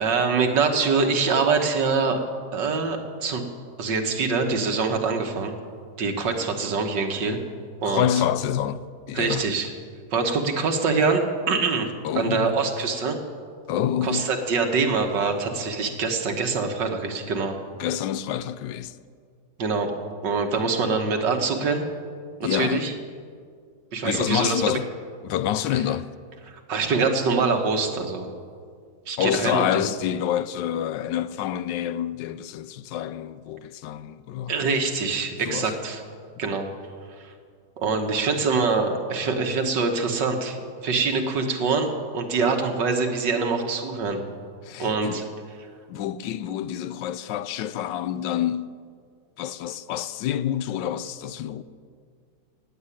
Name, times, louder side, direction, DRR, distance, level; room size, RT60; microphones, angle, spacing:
voice 1, 0.0-2.2 2.5-3.4 3.8-5.5 6.0-7.4 7.8-8.1 9.1-9.7 10.1-13.2 14.0-17.6 19.6-19.9 20.2-21.9 22.4-22.9 23.9-24.6 26.7-28.3 29.1-29.9 34.5-36.0 36.4-36.7 37.1-37.3 37.8-44.2 44.8-45.2, right 4 dB, 85° right, 2.1 m, -24 dB
voice 2, 7.8-9.5 12.0-12.6 13.7-14.3 17.8-19.0 22.4-22.9 24.0-24.9 25.2-26.1 29.2-34.5 35.4-35.7 44.6-45.2 45.9-48.7 49.4-51.6, left 10 dB, 90° left, 1.3 m, -27 dB
16.0 x 8.3 x 9.9 m
omnidirectional pair, 1.9 m